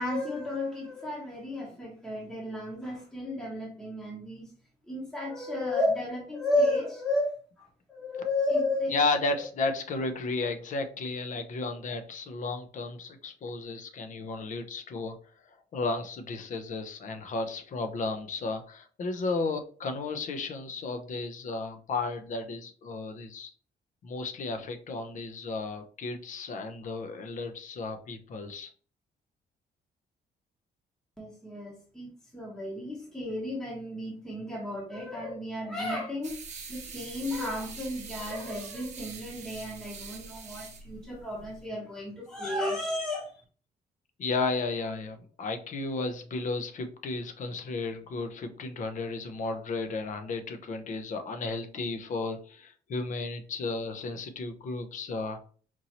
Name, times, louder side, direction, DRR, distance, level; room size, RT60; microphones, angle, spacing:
voice 1, 0.0-4.5 4.9-7.3 7.9-9.0 31.2-36.4 36.7-43.3, left 1 dB, 5° left, -3 dB, 1.0 m, -32 dB
voice 2, 8.9-15.1 15.5-23.5 24.0-28.7 44.2-55.4, left 3 dB, 50° left, 7 dB, 0.7 m, -33 dB
sound 1, 36.2-41.7, right 4 dB, 45° right, 0.8 m, -44 dB
4.5 x 2.7 x 2.8 m, 0.40 s
cardioid pair, 150°, 17 cm